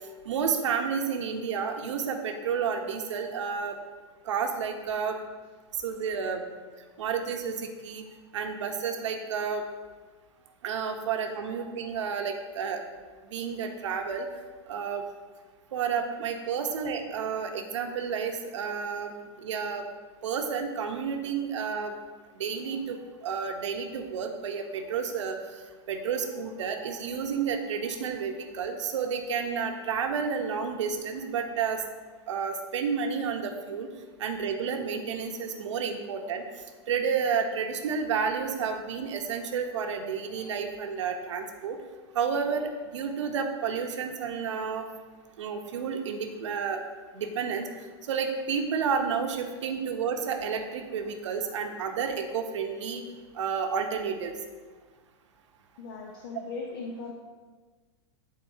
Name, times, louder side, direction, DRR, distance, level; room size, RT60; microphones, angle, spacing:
voice 1, 0.2-3.8 4.2-5.2 5.7-6.4 7.0-8.0 8.3-9.6 10.6-12.8 13.3-14.3 14.7-15.0 15.7-19.8 20.2-21.9 22.4-25.6 25.9-31.8 32.3-33.9 34.2-36.5 36.9-41.8 42.1-44.9 45.4-46.8 47.1-47.7 48.1-53.0 53.3-54.4, right 6 dB, 80° right, 5 dB, 1.0 m, -31 dB
voice 2, 55.8-57.1, left 4 dB, 45° left, 1 dB, 0.7 m, -38 dB
11.5 x 4.1 x 2.8 m, 1.4 s
supercardioid pair, 170°, 15 cm